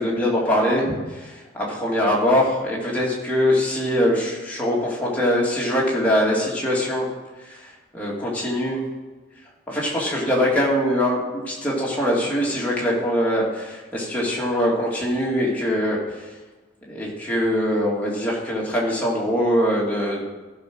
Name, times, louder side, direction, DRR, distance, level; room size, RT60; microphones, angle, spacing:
voice 1, 0.0-7.1 7.4-8.8 9.7-16.3 16.9-20.2, equal, 5° left, -5 dB, 2.6 m, -23 dB
14.5 x 5.1 x 6.2 m, 1.2 s
head